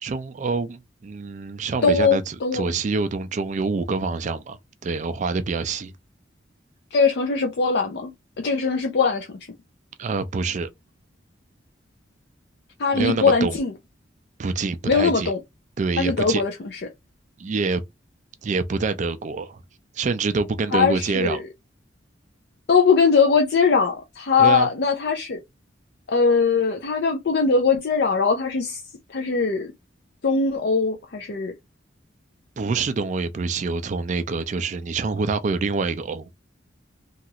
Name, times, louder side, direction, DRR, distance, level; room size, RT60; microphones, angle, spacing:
voice 1, 0.0-5.9 10.0-10.7 12.9-13.6 14.4-15.3 15.8-16.4 17.4-17.8 18.4-19.6 19.9-21.4 24.4-24.7 32.6-36.3, right 4 dB, 40° right, 0.3 m, -26 dB
voice 2, 1.8-2.7 6.9-8.1 8.4-9.3 12.8-13.7 14.8-15.4 16.0-16.8 20.7-21.4 22.7-25.4 26.1-28.8 29.1-29.7 30.2-31.5, left 5 dB, 60° left, 0.5 m, -21 dB
3.0 x 2.4 x 2.7 m
head